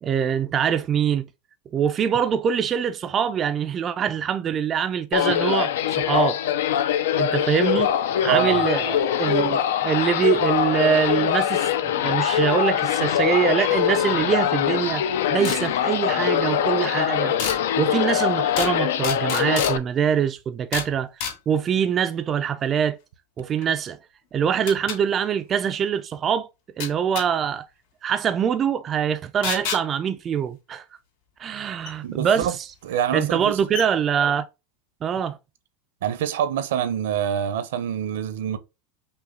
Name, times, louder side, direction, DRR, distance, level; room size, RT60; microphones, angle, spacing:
voice 1, 0.0-1.3 1.7-6.4 6.9-15.0 15.3-17.4 17.8-23.0 23.4-24.0 24.3-26.5 26.8-27.7 28.0-30.8 31.4-32.7 33.1-34.5 35.0-35.4, right 8 dB, 25° right, 0.3 m, -24 dB
sound 1, 5.1-19.8, left 10 dB, 80° left, 0.5 m, -23 dB
voice 2, 8.3-8.6 32.0-32.5 32.8-33.6 36.0-38.6, right 9 dB, 75° right, 0.7 m, -25 dB
sound 2, 15.4-15.6 17.4-17.6 18.6-18.8 19.0-19.8 20.7-20.9 21.2-21.4 23.6-23.7 24.7-25.0 26.8-27.3 29.4-29.8 31.9-32.0 32.9-33.0 33.4-33.5 33.7-33.9, left 6 dB, 60° left, 2.5 m, -29 dB
5.4 x 2.3 x 3.7 m
supercardioid pair, 140°, 0 cm